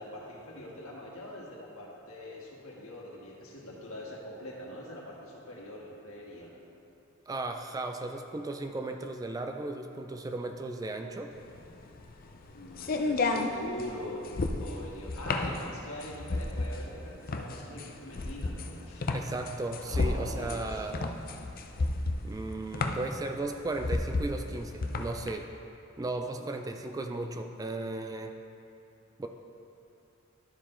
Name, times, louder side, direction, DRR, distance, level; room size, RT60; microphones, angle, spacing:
voice 1, 0.0-6.5 12.5-14.3 14.6-19.1 19.9-20.9 26.3-26.4, left 1 dB, 85° left, -3 dB, 1.6 m, -43 dB
voice 2, 7.3-11.3 19.1-21.2 22.2-25.5 26.0-28.3 29.2-29.3, right 2 dB, 15° right, 5 dB, 0.3 m, -36 dB
sound 1, 11.4-25.3, left 2 dB, 45° left, 0.5 m, -32 dB
12.0 x 4.5 x 4.3 m, 2.7 s
head